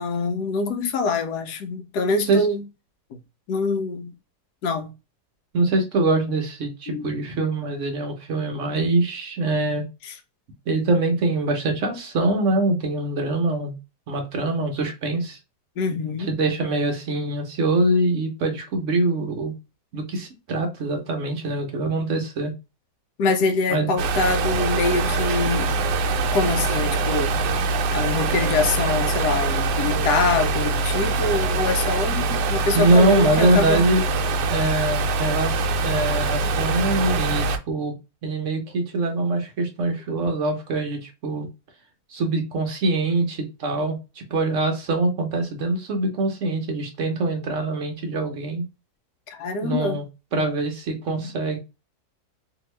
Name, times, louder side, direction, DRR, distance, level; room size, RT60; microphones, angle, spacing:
voice 1, 0.0-2.6 3.1-3.2 3.5-4.1 4.6-4.9 6.9-7.1 10.0-10.1 15.8-16.3 23.2-25.8 26.3-27.3 27.9-33.8 49.3-50.0 51.2-51.3, left 3 dB, 75° left, 1.2 m, -25 dB
voice 2, 5.5-9.8 10.7-13.8 14.1-15.4 16.3-19.5 19.9-22.5 23.7-23.9 32.7-34.0 34.5-37.9 38.2-41.5 42.1-48.6 49.6-50.0 50.3-51.6, right 2 dB, 60° right, 0.9 m, -23 dB
sound 1, 24.0-37.6, right 3 dB, 80° right, 1.2 m, -23 dB
2.8 x 2.7 x 3.1 m
omnidirectional pair, 1.8 m